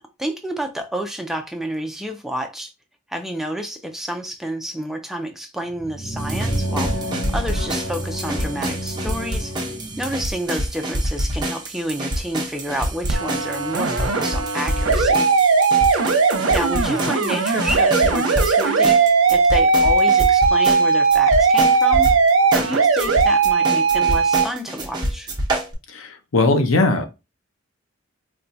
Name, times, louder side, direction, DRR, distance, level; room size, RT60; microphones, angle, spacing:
voice 1, 0.2-2.7 3.1-7.0 7.3-9.6 10.0-15.2 15.9-16.0 16.5-22.1 22.5-25.3, equal, ahead, 0.4 m, -29 dB
sound 1, 5.7-10.3, right 1 dB, 40° left, 0.9 m, -29 dB
sound 2, 6.2-25.7, right 1 dB, 20° right, 0.8 m, -26 dB
sound 3, 13.1-24.4, right 4 dB, 75° right, 0.7 m, -18 dB
voice 2, 25.9-27.1, left 2 dB, 90° left, 0.7 m, -19 dB
4.3 x 2.3 x 2.6 m
head